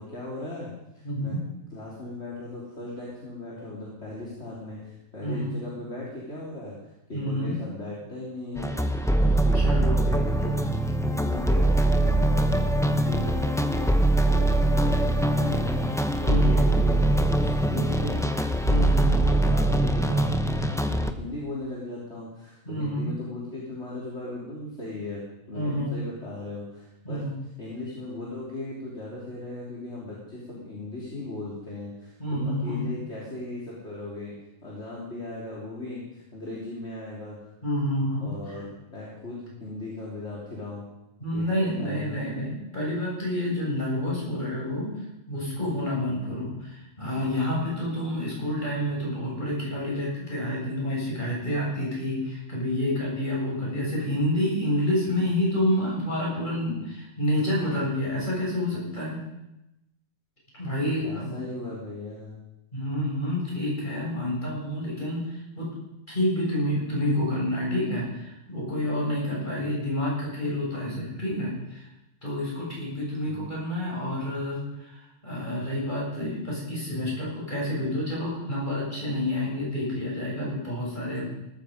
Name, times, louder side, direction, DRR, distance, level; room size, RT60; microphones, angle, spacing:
voice 1, 0.0-1.4 1.7-8.8 9.1-18.3 19.1-27.2 27.6-34.3 34.6-37.4 38.2-40.9 41.3-41.5 41.8-42.2 53.5-53.8 61.0-62.4 69.6-69.7 73.2-73.5, left 2 dB, 50° left, -5 dB, 3.9 m, -38 dB
voice 2, 1.0-1.4 5.2-5.6 7.1-7.5 9.5-9.9 16.2-16.7 18.6-19.3 22.7-23.2 25.5-26.0 27.0-27.3 32.2-32.9 37.6-38.3 41.2-44.9 45.3-59.2 60.5-61.5 62.7-65.7 66.1-71.8 72.2-81.3, left 1 dB, 35° left, -4 dB, 7.3 m, -28 dB
sound 1, 8.6-21.1, right 1 dB, 5° left, 0.6 m, -23 dB
19.5 x 14.0 x 5.3 m, 0.91 s
omnidirectional pair, 1.4 m